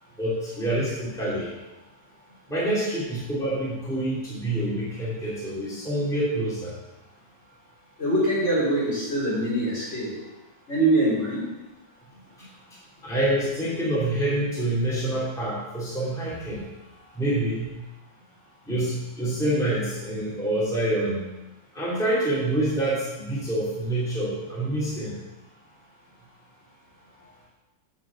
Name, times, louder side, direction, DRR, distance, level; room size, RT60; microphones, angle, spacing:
voice 1, 0.2-1.5 2.5-6.7 12.4-12.8 13.0-16.7 17.1-17.7 18.7-21.3 21.7-25.2, right 1 dB, ahead, -8 dB, 2.5 m, -27 dB
voice 2, 8.0-10.1 10.7-11.4, right 1 dB, 40° left, -8 dB, 4.0 m, -23 dB
7.3 x 6.3 x 7.4 m, 1.1 s
omnidirectional pair, 2.0 m